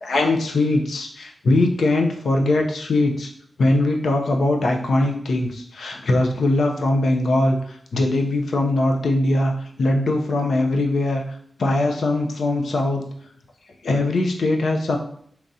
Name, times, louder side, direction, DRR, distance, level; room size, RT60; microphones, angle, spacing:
voice 1, 0.0-3.3 3.6-11.2 11.6-13.0 13.8-15.0, left 2 dB, 80° left, 2 dB, 0.6 m, -21 dB
3.7 x 2.9 x 2.7 m, 0.63 s
wide cardioid pair, 75°, 0 cm